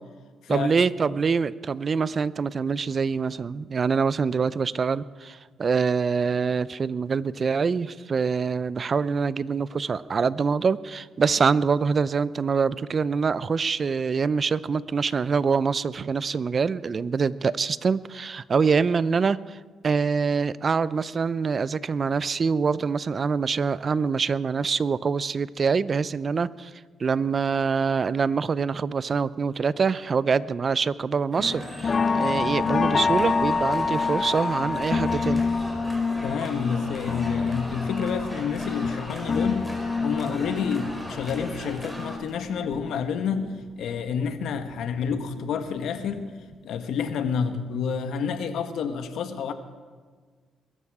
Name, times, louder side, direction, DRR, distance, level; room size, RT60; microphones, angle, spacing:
voice 1, 0.5-19.6 19.8-26.7 27.0-35.4, right 5 dB, 40° right, 17 dB, 0.5 m, -25 dB
sound 1, 31.3-42.2, equal, 5° right, 4.6 m, -39 dB
sound 2, 31.4-43.5 43.9-45.5 45.9-46.2 46.5-46.6, left 4 dB, 40° left, 0.6 m, -27 dB
sound 3, 31.8-44.0, left 1 dB, 15° left, 6.6 m, -46 dB
voice 2, 36.2-39.7 40.0-46.3 46.6-49.5, left 6 dB, 75° left, 8 dB, 1.4 m, -29 dB
22.0 x 13.0 x 4.9 m, 1.5 s
cardioid pair, 90°, 0 cm